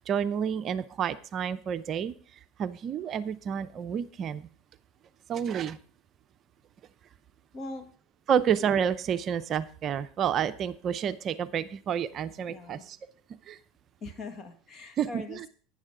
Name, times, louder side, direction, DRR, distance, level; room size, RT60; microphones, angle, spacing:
voice 1, 0.0-2.2 2.6-4.5 5.3-5.8 8.3-13.0 13.5-13.6 15.0-15.5, right 8 dB, 40° right, 11 dB, 0.5 m, -29 dB
voice 2, 7.5-7.9 12.5-12.8 14.0-15.5, left 3 dB, 35° left, 8 dB, 1.7 m, -41 dB
11.5 x 9.8 x 3.7 m, 0.42 s
supercardioid pair, 105°, 0 cm